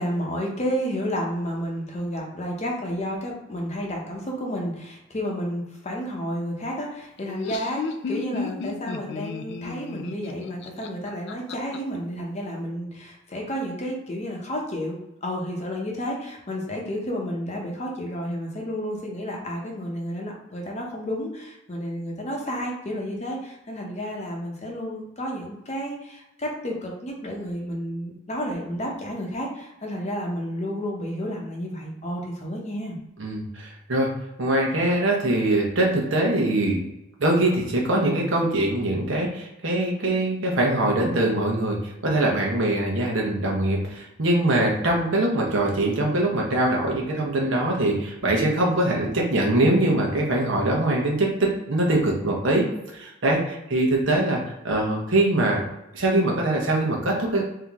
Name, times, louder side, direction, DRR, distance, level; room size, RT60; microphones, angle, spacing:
voice 1, 0.0-33.0, equal, 30° left, 0 dB, 0.8 m, -31 dB
Laughter, 7.2-11.8, left 4 dB, 55° left, 0.4 m, -33 dB
voice 2, 33.2-34.1 34.4-36.8 37.2-52.6 52.9-54.4 54.6-55.6 55.9-57.4, right 1 dB, 65° right, -1 dB, 1.1 m, -23 dB
3.6 x 2.8 x 3.5 m, 0.88 s
head